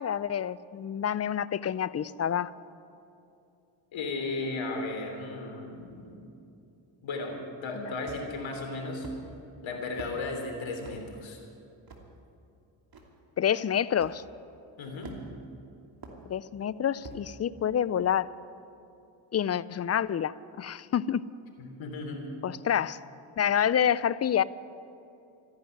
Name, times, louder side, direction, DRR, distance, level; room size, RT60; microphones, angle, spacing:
voice 1, 0.0-2.5 7.8-7.9 13.4-14.2 16.3-18.3 19.3-21.2 22.4-23.0 23.4-24.4, left 9 dB, 35° left, 19 dB, 0.5 m, -28 dB
voice 2, 3.9-6.2 7.0-9.1 9.6-11.4 14.8-15.2 21.6-22.2, left 3 dB, 70° left, 3 dB, 3.4 m, -35 dB
sound 1, 8.0-8.4 9.0-9.2 10.0-10.2 10.8-11.0 11.9-12.0 12.9-13.0 14.0-14.2 15.0-15.4 16.0-16.2 17.0-17.2, right 3 dB, 45° right, 2.8 m, -44 dB
14.5 x 10.5 x 9.4 m, 2.7 s
supercardioid pair, 65°, 49 cm